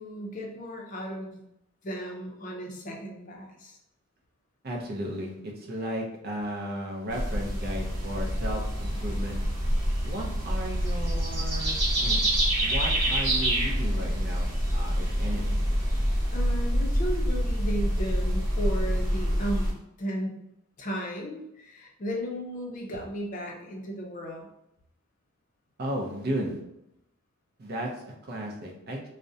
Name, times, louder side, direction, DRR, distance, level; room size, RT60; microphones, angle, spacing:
voice 1, 0.0-1.4 1.8-3.8 16.3-20.4 20.8-24.5, equal, 35° left, -1 dB, 0.5 m, -35 dB
voice 2, 4.6-9.4 10.0-12.3 12.6-15.7 25.8-26.6 27.6-29.1, equal, 45° right, -1 dB, 0.5 m, -35 dB
sound 1, 7.1-19.7, equal, 25° right, 1.1 m, -26 dB
2.4 x 2.1 x 2.6 m, 0.81 s
head